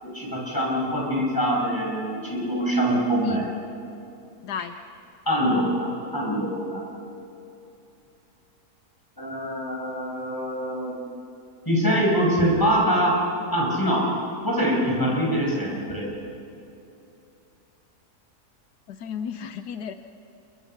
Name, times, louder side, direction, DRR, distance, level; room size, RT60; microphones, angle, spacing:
voice 1, 0.0-3.5 5.2-6.8 9.2-11.0 11.6-13.3 13.5-14.1 14.4-16.1, equal, 10° left, -3 dB, 6.3 m, -24 dB
voice 2, 4.4-4.8 18.9-19.9, left 7 dB, 80° left, 9 dB, 1.4 m, -34 dB
28.0 x 24.0 x 5.9 m, 2.8 s
omnidirectional pair, 1.7 m